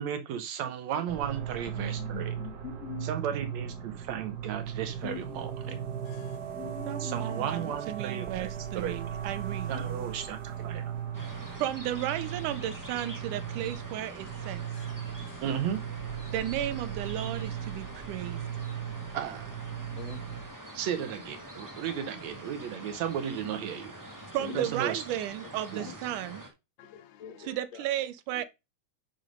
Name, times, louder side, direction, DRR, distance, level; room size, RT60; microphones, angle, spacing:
voice 1, 0.0-2.3 3.0-5.8 7.0-8.5 8.8-9.0 9.7-10.9 15.4-15.9 19.1-19.5 20.7-23.9 24.5-25.0 25.7-25.9, right 9 dB, 70° right, 2.0 m, -34 dB
sound 1, 1.1-20.5, right 9 dB, 50° right, 1.3 m, -37 dB
voice 2, 1.7-3.1 3.8-3.9 5.0-5.8 6.2-8.0 8.3-8.4 9.7-10.3 10.6-10.9 19.9-20.2 24.4-24.7 25.7-25.9 26.9-27.8, left 10 dB, 60° left, 2.4 m, -44 dB
voice 3, 6.1-6.4 11.2-11.6 13.6-13.7 14.4-15.4 24.2-24.4 26.8-27.6 28.4-28.5, left 12 dB, 75° left, 2.2 m, -56 dB
voice 4, 6.9-9.7 11.6-14.6 16.3-18.4 24.3-26.4 27.4-28.4, right 12 dB, 90° right, 2.3 m, -34 dB
sound 2, 11.1-26.5, right 1 dB, 20° right, 0.5 m, -45 dB
6.4 x 5.9 x 5.2 m
omnidirectional pair, 3.5 m